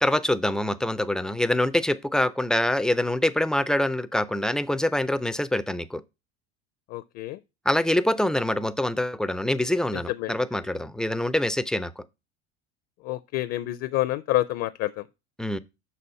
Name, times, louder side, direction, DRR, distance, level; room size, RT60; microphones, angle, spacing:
voice 1, 0.0-6.0 7.7-12.0 15.4-15.6, left 1 dB, ahead, 0.3 m, -25 dB
voice 2, 6.9-7.4 9.9-10.3 13.0-15.0, left 16 dB, 50° left, 0.5 m, -28 dB
6.0 x 4.2 x 5.5 m
supercardioid pair, 105°, 31 cm